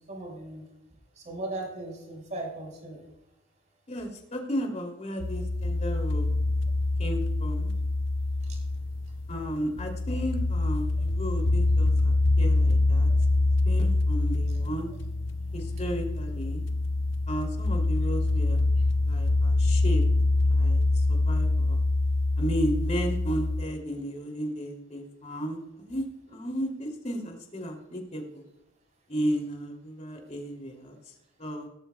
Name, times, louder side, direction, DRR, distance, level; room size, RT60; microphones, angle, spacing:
voice 1, 0.1-0.7 1.2-3.1 8.5-8.6, right 2 dB, 40° right, -1 dB, 5.2 m, -37 dB
voice 2, 3.9-6.3 7.0-7.7 9.3-13.1 13.3-14.9 15.5-16.6 17.3-18.6 19.0-20.0 20.5-20.8 21.1-21.8 22.4-28.4 29.1-31.0 31.4-31.7, equal, 35° left, 2 dB, 2.8 m, -34 dB
sound 1, 5.2-23.6, left 2 dB, 65° left, 0.8 m, -25 dB
17.5 x 14.0 x 2.3 m, 0.91 s
head